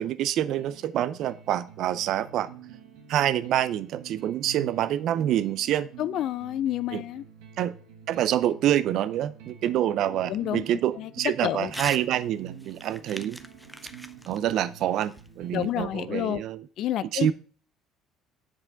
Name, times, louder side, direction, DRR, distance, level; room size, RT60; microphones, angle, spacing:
voice 1, 0.0-2.5 3.1-5.9 6.9-7.0 7.6-7.7 8.1-13.4 14.3-16.7 17.0-17.3, right 11 dB, 65° right, 14 dB, 0.5 m, -27 dB
sound 1, 0.6-16.5, right 8 dB, 80° right, 1.2 m, -47 dB
voice 2, 6.0-7.2 10.0-10.6 11.0-11.1 11.4-11.7 15.5-16.4 16.8-17.3, left 12 dB, 60° left, 16 dB, 0.3 m, -29 dB
Crumpling crinkling / Tearing, 11.7-12.1 12.4-15.7, equal, ahead, 0.5 m, -42 dB
7.5 x 4.8 x 3.9 m, 0.41 s
supercardioid pair, 75°, 0 cm